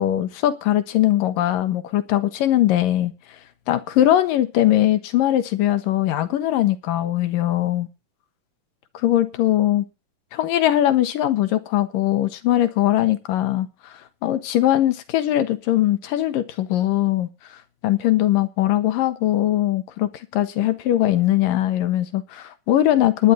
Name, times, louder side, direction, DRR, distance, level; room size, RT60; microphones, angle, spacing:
voice 1, 0.0-3.1 3.7-7.9 8.9-9.9 10.3-17.3 17.8-23.3, left 13 dB, 80° left, 3.0 m, -20 dB
19.0 x 11.0 x 4.0 m
omnidirectional pair, 3.9 m